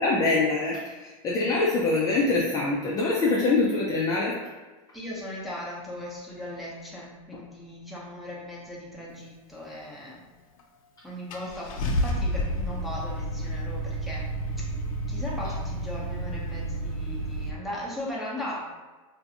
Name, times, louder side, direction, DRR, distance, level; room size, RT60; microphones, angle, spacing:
voice 1, 0.0-4.4, left 3 dB, 20° left, -5 dB, 0.4 m, -24 dB
voice 2, 4.9-10.2 11.0-14.2 15.1-18.6, left 1 dB, ahead, -6 dB, 0.7 m, -38 dB
Car / Engine starting, 10.6-10.7 11.3-17.5, equal, 70° left, 0.6 m, -30 dB
2.6 x 2.3 x 4.0 m, 1.3 s
supercardioid pair, 135°, 18 cm